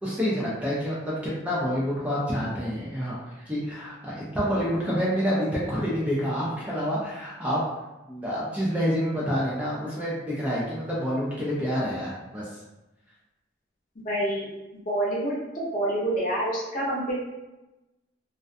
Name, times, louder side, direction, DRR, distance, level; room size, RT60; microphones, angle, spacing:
voice 1, 0.0-7.6 8.1-12.6, equal, 5° right, -7 dB, 0.4 m, -28 dB
voice 2, 14.0-14.5 14.9-17.1, right 1 dB, 40° left, -5 dB, 0.7 m, -27 dB
2.4 x 2.2 x 2.5 m, 1.0 s
head